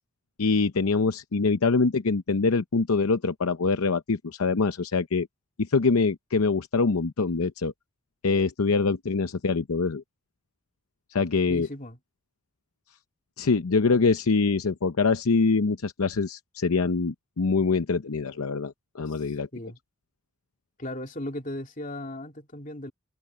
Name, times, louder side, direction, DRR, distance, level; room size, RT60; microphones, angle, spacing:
voice 1, 0.4-5.3 5.6-7.7 8.2-10.0 11.1-11.7 13.4-19.5, left 4 dB, 85° left, 0.7 m, -24 dB
voice 2, 11.5-12.0 19.1-19.8 20.8-22.9, left 1 dB, 35° left, 2.8 m, -37 dB
head